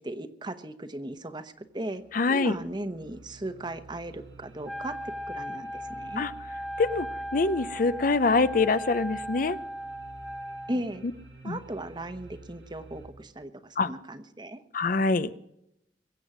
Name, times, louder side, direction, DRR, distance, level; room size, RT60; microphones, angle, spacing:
voice 1, 0.0-2.0 2.3-6.3 10.7-11.0 11.4-14.6, right 1 dB, 25° right, 10 dB, 1.1 m, -37 dB
sound 1, 1.7-13.1, right 3 dB, 90° right, 7.0 m, -50 dB
voice 2, 2.1-2.5 6.2-6.3 6.8-9.6 11.4-11.6 13.8-13.9 14.7-15.3, left 3 dB, 50° left, 14 dB, 0.6 m, -25 dB
Wind instrument woodwind instrument, 4.6-10.8, equal, ahead, 0.5 m, -37 dB
22.5 x 8.2 x 6.1 m, 0.81 s
head